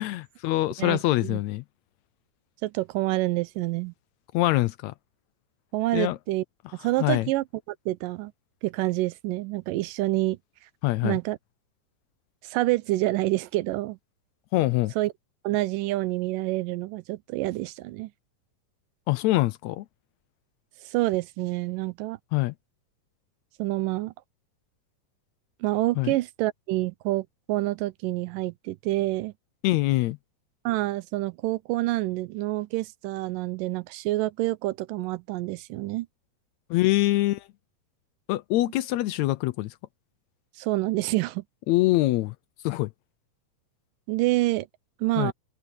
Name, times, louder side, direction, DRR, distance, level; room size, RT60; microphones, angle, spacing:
voice 1, 0.0-1.6 4.3-4.9 5.9-6.2 7.0-7.3 10.8-11.2 14.5-14.9 19.1-19.8 22.3-22.5 26.0-26.2 29.6-30.2 36.7-37.5 38.3-39.7 41.7-42.3 42.6-42.9 45.2-45.3, left 17 dB, 80° left, 1.6 m, -24 dB
voice 2, 0.8-1.4 2.6-3.9 5.7-6.4 6.8-7.4 7.9-8.3 8.6-10.4 11.0-11.4 12.4-14.0 15.0-15.1 15.4-18.1 20.8-22.2 23.6-24.1 25.6-29.3 30.7-36.1 40.6-41.4 44.1-44.7 45.0-45.3, right 18 dB, 90° right, 2.3 m, -27 dB
open air
omnidirectional pair, 3.8 m